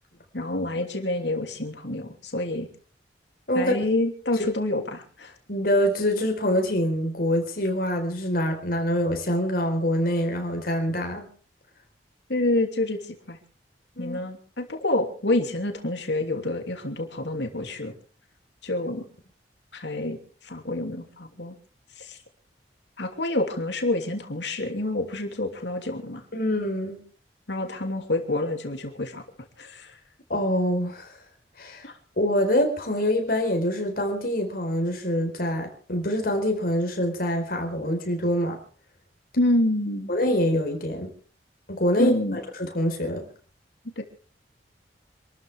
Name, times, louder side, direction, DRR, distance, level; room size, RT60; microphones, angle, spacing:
voice 1, 0.3-2.7 3.5-5.3 12.3-13.4 14.0-17.9 18.6-19.0 19.7-21.5 22.0-22.2 23.0-26.2 27.5-29.2 29.6-30.0 31.8-32.0 39.4-40.1 42.0-42.4 44.0-44.1, left 1 dB, 75° left, 4 dB, 2.8 m, -27 dB
voice 2, 5.5-11.3 14.0-14.2 26.3-27.0 30.3-31.1 31.6-38.6 40.1-41.1 41.7-43.2, equal, 55° left, 4 dB, 4.4 m, -25 dB
27.0 x 13.5 x 3.5 m, 0.41 s
head